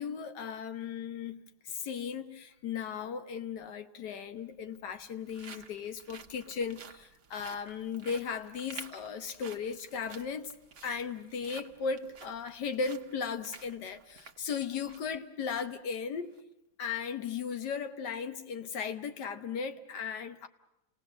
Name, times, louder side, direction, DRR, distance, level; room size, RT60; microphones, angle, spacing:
voice 1, 0.0-10.5 10.8-16.4 16.8-20.5, left 6 dB, 90° left, 1.7 m, -36 dB
sound 1, 3.6-3.7 4.6-15.2 15.5-15.7 16.2-16.4, right 6 dB, 50° right, 1.3 m, -52 dB
29.0 x 18.5 x 7.3 m
omnidirectional pair, 1.8 m